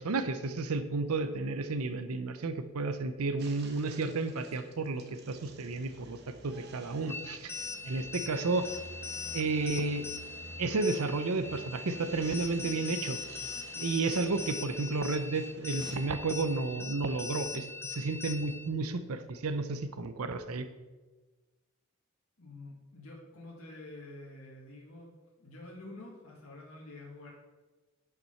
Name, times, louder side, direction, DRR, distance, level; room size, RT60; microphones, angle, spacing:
voice 1, 0.0-6.2 6.4-7.5 7.8-8.7 9.3-10.1 10.6-13.2 13.8-20.7, right 3 dB, 85° right, 10 dB, 0.7 m, -32 dB
sound 1, 3.4-16.0, right 2 dB, 45° right, 1.1 m, -51 dB
sound 2, 7.1-18.7, left 4 dB, 10° left, 0.6 m, -41 dB
voice 2, 22.4-25.1 25.4-27.3, left 2 dB, 70° left, -4 dB, 1.9 m, -48 dB
9.3 x 5.9 x 5.7 m, 1.2 s
head